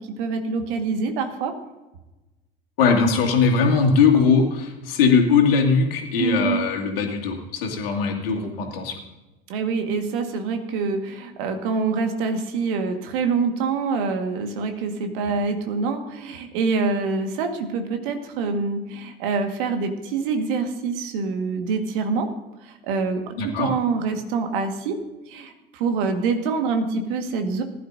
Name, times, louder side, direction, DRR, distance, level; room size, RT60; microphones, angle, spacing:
voice 1, 0.0-1.5 6.2-6.6 9.5-22.3 22.6-25.0 25.3-27.6, right 4 dB, 55° right, 6 dB, 1.8 m, -25 dB
voice 2, 2.8-9.0 23.4-23.7, left 5 dB, 65° left, 1 dB, 2.4 m, -20 dB
20.0 x 11.0 x 2.7 m, 1.1 s
figure-of-eight pair, 70°, 31 cm